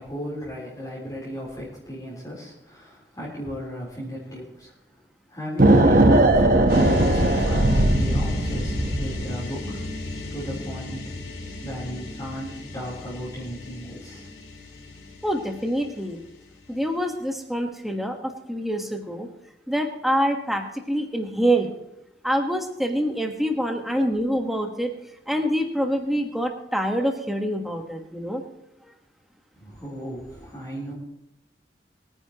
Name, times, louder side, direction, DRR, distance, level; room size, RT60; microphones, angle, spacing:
voice 1, 0.0-4.7 5.3-9.8 10.3-11.1 11.6-14.3 29.5-30.9, equal, 20° left, -8 dB, 3.7 m, -35 dB
sound 1, 5.6-9.3, right 1 dB, 50° right, 1.1 m, -18 dB
sound 2, 6.7-16.7, left 1 dB, 60° left, 3.7 m, -34 dB
voice 2, 15.2-16.2 16.7-19.3 19.7-21.7 22.2-24.9 25.3-28.4, equal, ahead, 3 dB, 1.3 m, -26 dB
23.0 x 9.9 x 3.0 m, 0.83 s
head